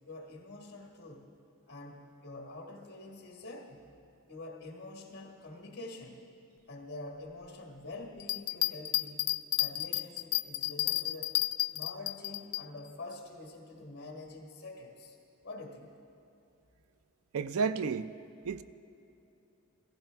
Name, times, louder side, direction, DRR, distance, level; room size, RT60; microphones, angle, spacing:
voice 1, 0.1-1.3 1.7-3.8 4.3-6.2 6.7-9.2 9.6-11.4 11.7-15.2 15.4-15.9, left 2 dB, 50° left, 1.6 m, -46 dB
Bell, 8.2-12.6 13.1-13.2, left 17 dB, 70° left, 0.3 m, -31 dB
voice 2, 17.3-18.1 18.4-18.6, right 5 dB, 80° right, 0.4 m, -31 dB
15.5 x 15.0 x 3.4 m
head